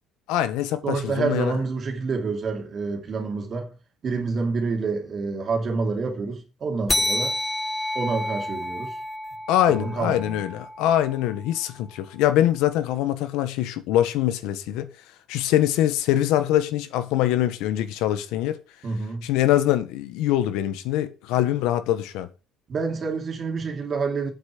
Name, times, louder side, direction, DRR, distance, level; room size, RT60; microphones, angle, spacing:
voice 1, 0.3-1.6 9.5-14.9 15.3-18.6 19.2-22.3, left 12 dB, 70° left, 1.3 m, -23 dB
voice 2, 0.8-3.7 4.0-7.4 7.9-9.0 9.7-10.4 18.8-19.3 22.7-24.3, right 4 dB, 25° right, 2.5 m, -28 dB
sound 1, 6.9-11.8, left 1 dB, 10° left, 0.5 m, -30 dB
8.5 x 6.2 x 6.1 m
cardioid pair, 180°, 0 cm